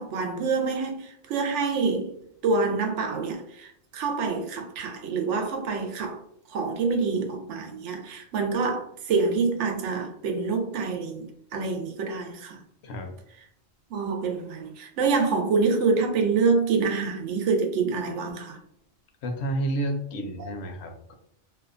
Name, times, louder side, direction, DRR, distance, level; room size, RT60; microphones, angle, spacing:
voice 1, 0.0-2.1 2.4-6.2 6.5-12.6 13.9-18.6 20.4-20.5, right 4 dB, 90° right, 4 dB, 0.9 m, -26 dB
voice 2, 12.8-13.1 19.2-21.1, right 1 dB, 70° left, 4 dB, 0.8 m, -30 dB
2.6 x 2.1 x 2.4 m, 0.71 s
omnidirectional pair, 1.2 m